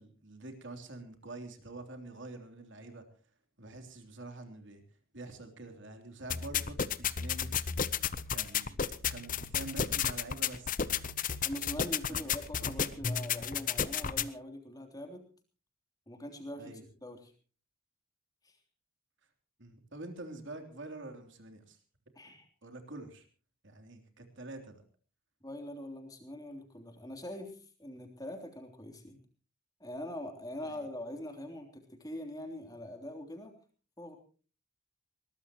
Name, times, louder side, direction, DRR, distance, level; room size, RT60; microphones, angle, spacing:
voice 1, 0.0-3.0 3.6-4.8 5.1-7.5 8.3-10.8 12.1-12.3 12.5-12.9 16.6-16.8 19.6-21.8 22.2-22.4 22.6-23.3 23.6-24.8 30.6-30.8, right 2 dB, 55° right, 6 dB, 3.4 m, -46 dB
sound 1, 6.3-14.3, left 7 dB, 35° left, 0.8 m, -33 dB
voice 2, 11.4-15.2 16.1-17.3 18.4-18.6 22.1-22.5 25.4-29.2 29.8-33.5 34.0-34.2, left 1 dB, 15° left, 4 dB, 3.3 m, -43 dB
21.5 x 20.0 x 3.0 m, 0.38 s
head